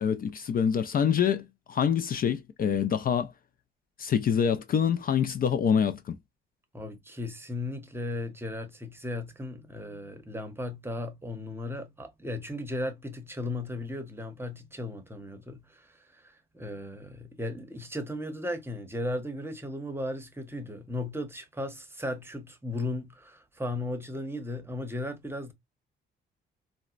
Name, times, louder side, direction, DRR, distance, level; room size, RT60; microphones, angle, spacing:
voice 1, 0.0-3.3 4.0-6.2, left 8 dB, 45° left, 0.4 m, -26 dB
voice 2, 6.7-25.5, left 1 dB, 10° right, 0.8 m, -36 dB
4.0 x 2.1 x 2.3 m
cardioid pair, 90°, 20 cm